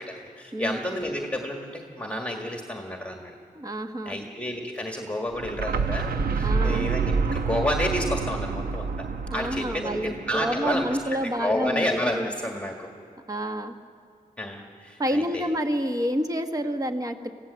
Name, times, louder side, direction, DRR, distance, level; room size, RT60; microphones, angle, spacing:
voice 1, 0.0-3.3 4.0-9.1 9.3-12.9 14.4-15.5, left 1 dB, 10° left, 2 dB, 1.7 m, -30 dB
voice 2, 3.5-4.2 6.4-6.9 9.3-12.4 13.3-13.7 15.0-17.3, equal, 25° right, 6 dB, 1.3 m, -28 dB
sound 1, 5.3-11.1, right 5 dB, 90° right, 0.9 m, -28 dB
28.5 x 16.0 x 8.1 m, 2.5 s
wide cardioid pair, 155°, 15 cm